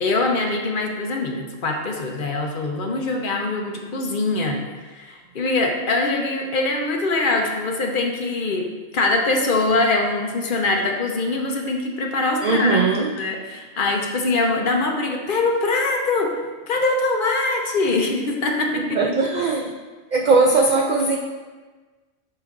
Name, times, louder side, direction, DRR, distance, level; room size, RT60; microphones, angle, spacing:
voice 1, 0.0-4.6 4.9-8.7 8.9-12.8 13.2-16.3 16.7-19.0, left 3 dB, 50° left, 1 dB, 0.8 m, -23 dB
voice 2, 12.4-13.2 18.8-19.7 20.1-21.2, right 3 dB, 85° right, 1 dB, 0.4 m, -19 dB
7.9 x 5.6 x 2.5 m, 1.3 s
omnidirectional pair, 1.3 m